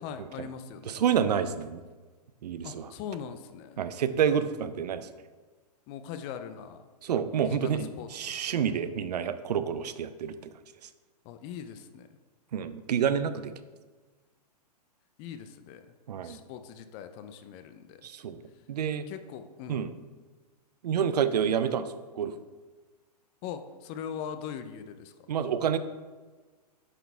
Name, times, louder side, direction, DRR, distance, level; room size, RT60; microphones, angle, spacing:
voice 1, 0.0-1.0 2.6-3.8 5.9-6.9 7.4-8.6 11.2-12.1 15.2-16.0 16.2-18.0 19.1-19.9 23.4-25.1, left 8 dB, 25° left, 10 dB, 0.4 m, -41 dB
voice 2, 0.9-1.8 2.4-2.9 3.8-5.1 7.0-10.3 12.5-13.5 16.1-16.4 18.0-18.4 18.7-19.1 19.7-19.9 20.8-21.9 22.2-22.4 25.3-25.8, right 8 dB, 75° right, 12 dB, 0.5 m, -28 dB
9.0 x 4.0 x 3.4 m, 1.4 s
hypercardioid pair, 130°, 21 cm